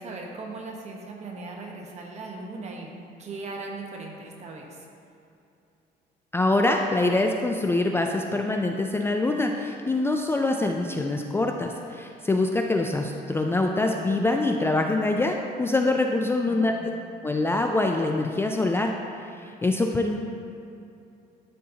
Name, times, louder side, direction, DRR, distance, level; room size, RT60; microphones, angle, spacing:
voice 1, 0.0-2.9 3.2-4.9 16.4-17.0, right 3 dB, 40° right, 0 dB, 1.2 m, -38 dB
voice 2, 6.3-16.7 17.2-18.9 19.3-20.2, left 2 dB, 15° left, 2 dB, 0.4 m, -24 dB
12.0 x 4.1 x 2.8 m, 2.7 s
cardioid pair, 110°, 17 cm